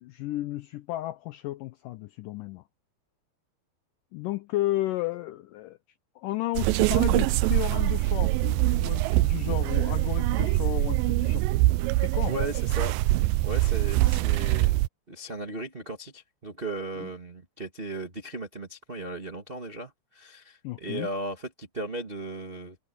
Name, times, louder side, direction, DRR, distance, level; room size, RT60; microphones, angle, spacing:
voice 1, 0.0-2.6 4.1-5.8 6.2-11.5 12.0-12.3 17.0-17.1 20.6-21.1, left 16 dB, 85° left, 1.9 m, -33 dB
sound 1, 6.5-14.9, right 18 dB, 90° right, 2.0 m, -24 dB
voice 2, 12.3-14.8 15.1-22.8, right 2 dB, 65° right, 0.5 m, -36 dB
omnidirectional pair, 4.5 m